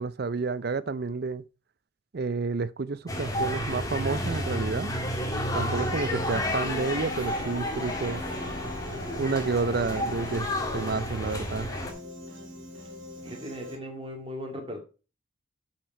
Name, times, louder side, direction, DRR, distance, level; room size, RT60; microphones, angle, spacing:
voice 1, 0.0-1.4 2.1-4.9 5.5-8.2 9.2-10.5 10.7-11.7, right 4 dB, 50° right, 0.5 m, -30 dB
sound 1, 3.1-11.9, left 1 dB, 20° left, 1.6 m, -31 dB
sound 2, 5.1-11.7, left 3 dB, 60° left, 0.9 m, -41 dB
Piano, 5.7-13.8, left 1 dB, 70° right, 2.3 m, -44 dB
voice 2, 13.2-14.8, equal, 30° right, 2.2 m, -38 dB
10.5 x 4.6 x 4.4 m
head